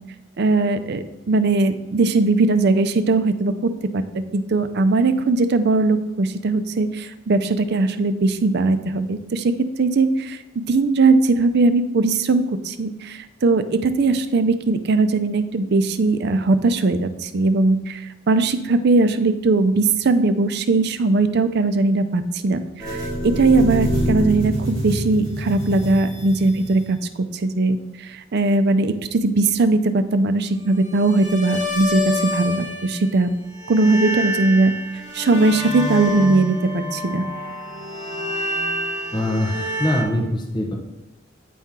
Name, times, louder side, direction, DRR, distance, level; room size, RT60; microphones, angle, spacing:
voice 1, 0.4-27.0 27.3-33.3 33.7-34.7 35.1-37.2, right 3 dB, 55° right, 10 dB, 0.5 m, -19 dB
sound 1, 22.8-27.0 30.8-33.2 33.5-40.0, equal, 20° right, 2.5 m, -27 dB
voice 2, 39.1-40.7, left 1 dB, 20° left, 0 dB, 0.8 m, -23 dB
9.1 x 4.3 x 3.7 m, 0.98 s
head